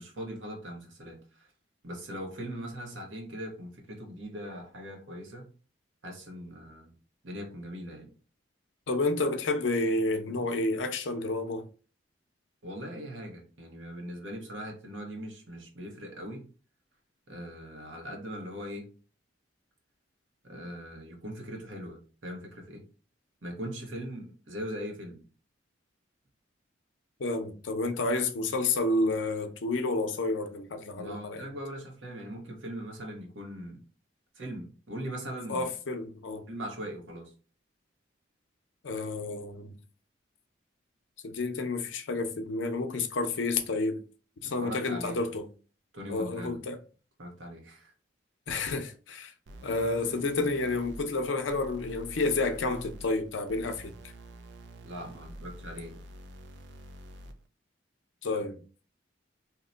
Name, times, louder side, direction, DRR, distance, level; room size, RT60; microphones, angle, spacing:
voice 1, 0.0-1.5 1.8-5.4 6.0-6.9 7.2-8.1 12.6-16.5 17.3-18.9 20.4-22.8 23.4-25.2 31.0-33.8 34.3-35.7 36.5-37.3 44.4-45.2 45.9-46.6 47.2-47.9 54.8-56.0, equal, 85° right, 1.0 m, -40 dB
voice 2, 8.9-11.6 27.2-31.5 35.5-36.4 38.8-39.8 41.2-44.0 44.4-45.5 46.1-46.8 48.5-49.3 49.6-53.9 58.2-58.6, left 2 dB, 80° left, 0.6 m, -30 dB
sound 1, 49.5-57.5, right 1 dB, 70° right, 0.4 m, -47 dB
2.8 x 2.1 x 3.8 m
head